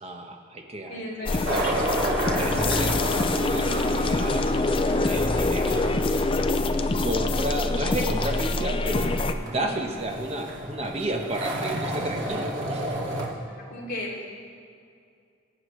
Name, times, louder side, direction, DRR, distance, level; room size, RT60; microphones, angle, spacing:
voice 1, 0.0-1.0 1.3-1.6 2.4-4.4 5.0-5.8 7.0-9.1 9.4-13.0, right 1 dB, 30° right, 2 dB, 1.2 m, -32 dB
voice 2, 0.9-1.6 4.7-5.2 9.5-9.8 13.2-14.5, left 1 dB, 45° left, -6 dB, 3.0 m, -37 dB
sound 1, 1.3-9.3, left 2 dB, 25° left, 0.4 m, -25 dB
sound 2, 1.4-13.2, right 1 dB, 65° right, 2.2 m, -32 dB
22.0 x 8.6 x 3.2 m, 2.3 s
head